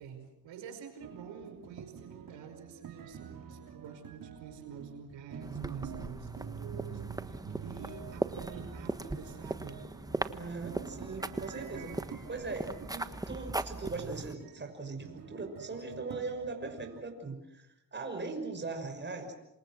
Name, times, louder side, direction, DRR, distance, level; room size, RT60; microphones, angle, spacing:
voice 1, 0.0-9.8, right 6 dB, 75° right, 6 dB, 5.4 m, -48 dB
sound 1, 1.0-17.0, right 7 dB, 45° right, 3.3 m, -47 dB
sound 2, 5.4-14.3, right 2 dB, 10° right, 1.4 m, -39 dB
voice 2, 10.3-19.3, right 3 dB, 25° right, 4 dB, 6.1 m, -40 dB
27.5 x 27.0 x 6.2 m, 0.88 s
cardioid pair, 100°, 45 cm